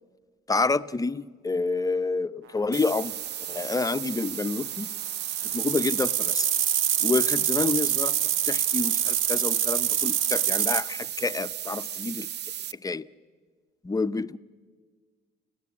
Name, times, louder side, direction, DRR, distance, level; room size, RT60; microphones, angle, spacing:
voice 1, 0.5-3.1 3.5-4.9 5.5-6.5 7.0-8.1 8.5-12.3 12.8-13.0 13.8-14.4, left 3 dB, 20° left, 0.6 m, -28 dB
sound 1, 2.7-12.7, right 10 dB, 60° right, 0.6 m, -35 dB
sound 2, 4.8-10.8, right 10 dB, 80° right, 0.8 m, -26 dB
30.0 x 13.5 x 8.4 m
cardioid pair, 90°, 20 cm